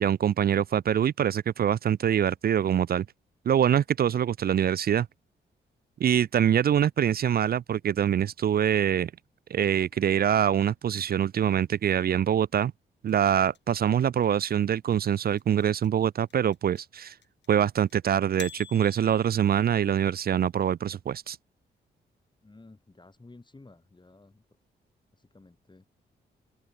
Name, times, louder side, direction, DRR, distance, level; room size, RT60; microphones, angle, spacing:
voice 1, 0.0-3.1 3.5-5.1 6.0-9.1 9.5-12.7 13.0-17.1 17.5-21.4, right 9 dB, 55° right, 0.5 m, -24 dB
sound 1, 13.1-20.1, left 8 dB, 65° left, 4.9 m, -48 dB
voice 2, 22.4-24.4 25.3-25.8, left 2 dB, 25° left, 4.0 m, -53 dB
open air
supercardioid pair, 55°, 19 cm